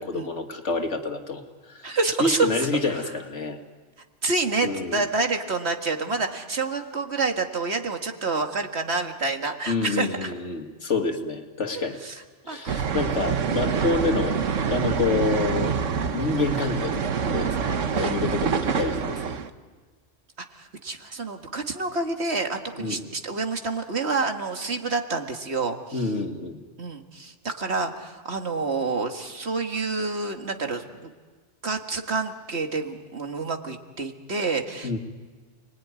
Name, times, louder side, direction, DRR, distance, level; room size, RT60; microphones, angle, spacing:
voice 1, 0.0-1.4 1.7-3.6 4.6-5.0 9.7-12.0 12.4-15.8 16.1-19.4 22.8-23.0 25.9-26.6 34.8-35.0, left 3 dB, 70° left, 4 dB, 2.4 m, -28 dB
voice 2, 1.8-2.7 3.0-3.1 4.2-10.3 11.7-12.9 17.9-18.1 20.4-26.1 26.8-31.1 31.6-35.0, right 3 dB, 60° right, 4 dB, 2.1 m, -28 dB
sound 1, 12.7-19.5, right 6 dB, 85° right, 1.4 m, -26 dB
29.5 x 21.0 x 9.6 m, 1.4 s
omnidirectional pair, 1.3 m